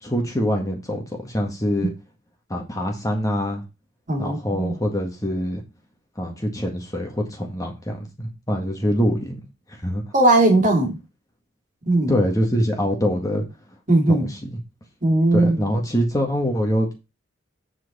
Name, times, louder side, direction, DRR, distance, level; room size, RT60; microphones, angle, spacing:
voice 1, 0.0-1.9 2.5-3.6 4.2-5.6 6.2-9.4 9.7-10.0 12.1-13.4 14.1-14.6 15.3-16.9, equal, 15° left, 1.8 m, -24 dB
voice 2, 4.1-4.7 10.1-11.0 11.9-12.1 13.9-14.3 15.0-15.7, right 2 dB, 40° right, 2.6 m, -18 dB
7.8 x 6.0 x 4.2 m
head